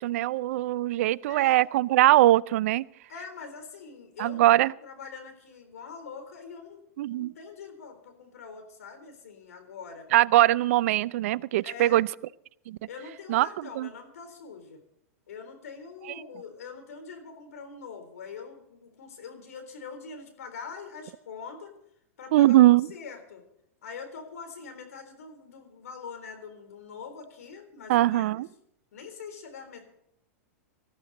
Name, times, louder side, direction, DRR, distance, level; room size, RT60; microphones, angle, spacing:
voice 1, 0.0-2.8 4.2-4.7 7.0-7.3 10.1-12.1 12.7-12.8 13.3-13.9 22.3-22.9 27.9-28.5, right 15 dB, 65° right, 21 dB, 0.5 m, -21 dB
voice 2, 1.3-1.7 3.1-6.8 7.1-10.1 11.6-12.0 12.9-14.8 15.3-21.7 22.2-23.4 23.8-28.4 28.9-29.9, left 5 dB, 80° left, 6 dB, 3.8 m, -43 dB
18.5 x 14.0 x 4.1 m, 0.75 s
hypercardioid pair, 110°, 8 cm